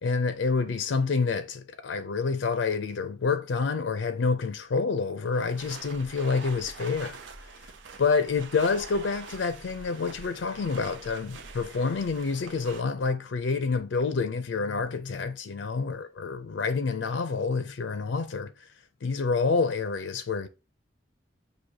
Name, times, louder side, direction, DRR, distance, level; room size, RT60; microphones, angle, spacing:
voice 1, 0.0-7.2 8.0-18.5 19.0-20.5, left 4 dB, 90° left, 0.4 m, -28 dB
sound 1, 5.3-12.8, right 4 dB, 85° right, 0.6 m, -45 dB
6.2 x 2.7 x 2.7 m
head